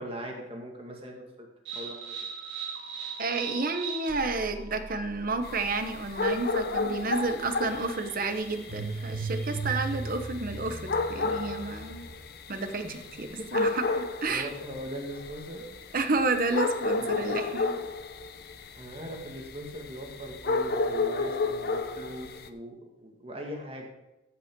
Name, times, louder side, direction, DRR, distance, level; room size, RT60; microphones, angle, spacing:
voice 1, 0.0-1.5 1.7-2.1 12.8-13.5 13.8-14.0 14.3-15.6 17.0-17.5 18.8-23.9, equal, 30° right, 0 dB, 2.0 m, -40 dB
sound 1, 1.7-12.3, right 4 dB, 65° right, 1.8 m, -38 dB
voice 2, 3.2-12.1 12.5-14.5 15.9-17.8, right 3 dB, 50° right, 8 dB, 1.1 m, -31 dB
sound 2, 5.4-22.5, left 3 dB, 55° left, 0.7 m, -32 dB
14.5 x 5.8 x 5.4 m, 0.98 s
head